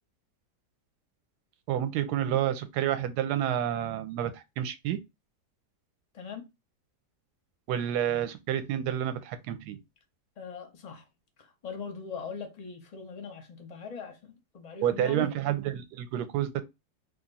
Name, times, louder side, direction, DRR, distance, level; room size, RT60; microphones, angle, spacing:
voice 1, 1.7-5.0 7.7-9.8 14.8-16.6, right 11 dB, 75° right, 1.1 m, -29 dB
voice 2, 6.1-6.5 10.4-11.0 11.4-15.3, left 6 dB, 50° left, 0.4 m, -41 dB
2.9 x 2.5 x 3.9 m
omnidirectional pair, 1.9 m